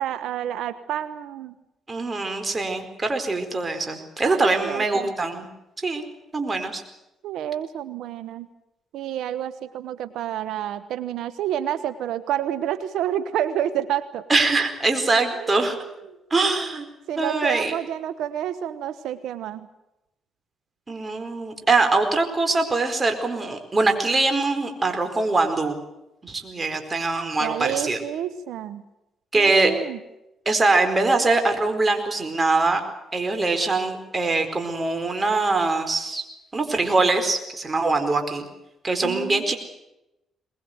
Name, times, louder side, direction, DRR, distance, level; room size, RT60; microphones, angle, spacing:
voice 1, 0.0-1.5 4.2-5.1 7.2-8.5 8.9-14.2 15.4-16.2 17.1-19.7 27.4-28.8 29.3-30.0 39.0-39.5, right 11 dB, 80° right, 13 dB, 1.1 m, -29 dB
voice 2, 1.9-5.5 5.8-6.0 6.3-6.8 14.3-15.8 16.3-16.9 17.2-17.7 20.9-25.8 26.2-28.0 29.3-29.7 30.5-32.8 33.1-36.2 36.5-38.5 38.8-39.6, right 3 dB, 25° right, 6 dB, 4.5 m, -23 dB
22.0 x 21.5 x 8.0 m, 0.91 s
cardioid pair, 90°, 0 cm